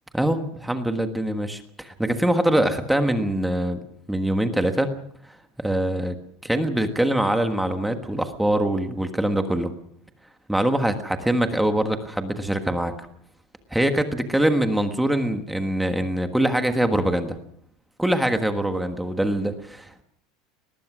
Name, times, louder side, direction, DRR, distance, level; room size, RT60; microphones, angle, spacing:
voice 1, 0.1-3.8 4.1-4.9 5.6-6.2 6.4-9.7 10.5-12.9 13.7-17.4 18.0-20.0, right 1 dB, 5° right, 6 dB, 1.4 m, -23 dB
22.5 x 20.0 x 6.2 m, 0.67 s
supercardioid pair, 180°, 0 cm